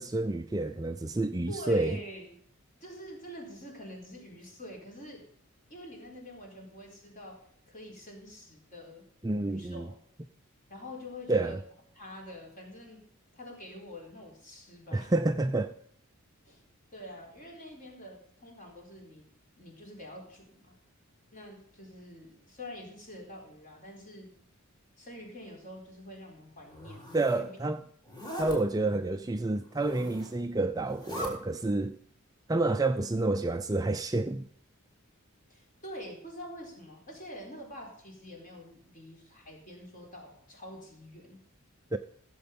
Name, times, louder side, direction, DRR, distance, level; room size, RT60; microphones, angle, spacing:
voice 1, 0.0-2.0 9.2-9.9 11.3-11.6 14.9-15.7 27.1-27.8 28.4-31.9 32.5-34.4 41.9-42.0, right 2 dB, 15° right, 0.4 m, -29 dB
voice 2, 1.5-2.3 2.8-5.3 5.7-9.0 9.4-10.0 10.7-11.6 11.9-13.0 13.3-15.1 16.4-16.6 16.9-19.3 19.6-20.7 21.3-24.3 25.0-27.6 35.5-41.4, equal, 35° left, 4.2 m, -46 dB
Zipper (clothing), 26.7-27.4 28.0-28.6 29.7-30.4 30.8-31.3, equal, 20° left, 4.0 m, -41 dB
15.5 x 7.9 x 5.3 m
head